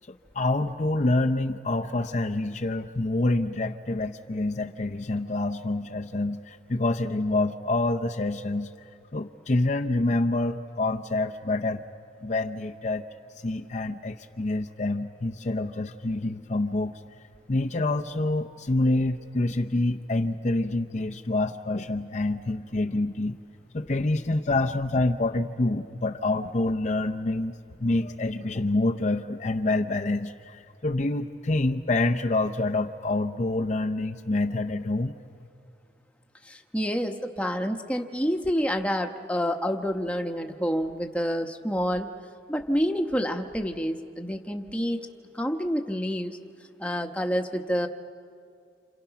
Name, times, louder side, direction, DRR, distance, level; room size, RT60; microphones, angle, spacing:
voice 1, 0.3-8.7 9.1-11.8 12.2-13.0 13.4-16.9 17.5-23.4 23.7-35.2, left 2 dB, 40° left, 3 dB, 0.7 m, -27 dB
voice 2, 36.4-42.1 42.5-45.1 45.3-46.4 46.8-47.9, equal, 5° left, 4 dB, 1.0 m, -28 dB
29.5 x 28.5 x 5.9 m, 2.3 s
head